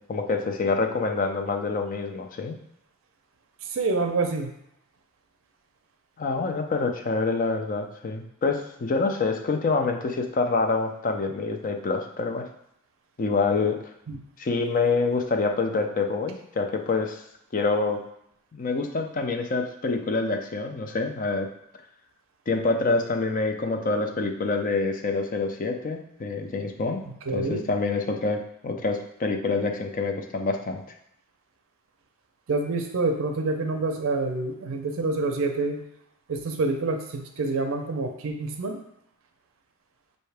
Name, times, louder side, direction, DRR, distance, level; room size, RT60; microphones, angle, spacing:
voice 1, 0.0-2.5 6.2-12.5 13.2-13.9 14.4-17.2 17.5-18.0 18.5-21.5 22.5-27.0 27.3-30.8, left 3 dB, 40° left, 5 dB, 0.4 m, -26 dB
voice 2, 3.6-4.5 14.1-14.2 27.0-27.6 32.5-35.8 36.3-38.8, right 3 dB, 65° right, 3 dB, 0.5 m, -27 dB
5.5 x 2.7 x 3.3 m, 0.75 s
head